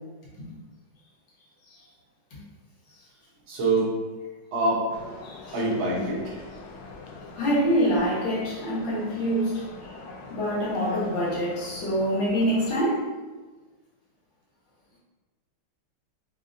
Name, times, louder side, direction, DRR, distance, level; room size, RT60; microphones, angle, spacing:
voice 1, 3.5-3.9 4.5-4.8 5.5-6.4, right 2 dB, 75° right, -4 dB, 1.7 m, -25 dB
sound 1, 4.9-12.8, left 3 dB, 90° left, 0.8 m, -44 dB
voice 2, 5.2-5.6 7.3-9.6 10.3-13.1, equal, 70° left, -7 dB, 1.8 m, -25 dB
4.9 x 2.6 x 2.5 m, 1.3 s
omnidirectional pair, 2.2 m